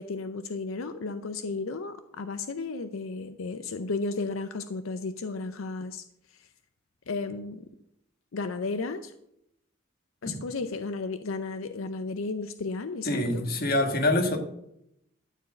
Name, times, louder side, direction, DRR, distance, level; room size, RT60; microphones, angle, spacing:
voice 1, 0.0-6.0 6.3-6.5 7.1-7.6 8.3-9.1 10.2-13.5, left 3 dB, 85° left, 10 dB, 0.6 m, -34 dB
voice 2, 13.0-14.4, left 1 dB, 45° left, 4 dB, 1.6 m, -25 dB
12.5 x 4.6 x 7.9 m, 0.79 s
head